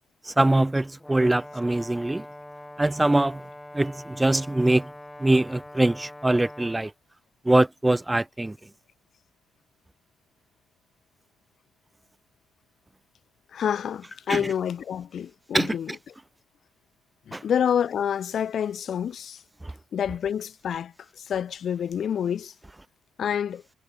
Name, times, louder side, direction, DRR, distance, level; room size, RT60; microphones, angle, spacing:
voice 1, 0.3-2.2 2.8-3.4 3.7-4.9 5.2-6.9 7.4-8.6 14.3-14.4 15.5-15.7 17.3-17.4, right 2 dB, 10° right, 1.0 m, -22 dB
Brass instrument, 1.0-6.8, left 1 dB, 10° left, 2.4 m, -43 dB
voice 2, 13.5-16.0 17.3-19.4 19.9-22.5 23.2-23.6, left 8 dB, 60° left, 2.1 m, -28 dB
cardioid pair, 90°, 0 cm